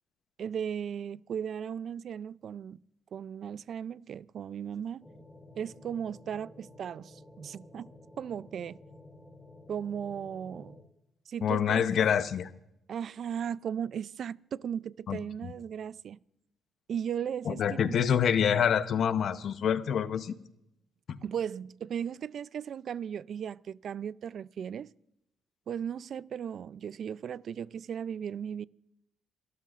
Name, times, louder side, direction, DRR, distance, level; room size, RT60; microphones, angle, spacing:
voice 1, 0.4-2.8 3.1-5.1 5.6-7.9 8.2-8.8 9.7-10.8 11.3-11.8 12.9-16.2 16.9-18.0 21.2-24.9 25.7-28.6, right 8 dB, 60° right, 0.4 m, -36 dB
sound 1, 5.0-10.8, left 1 dB, 15° left, 4.0 m, -52 dB
voice 2, 11.4-12.5 15.1-15.5 17.5-20.3 21.1-21.2, left 8 dB, 65° left, 0.8 m, -27 dB
28.5 x 13.0 x 2.5 m
cardioid pair, 90°, 0 cm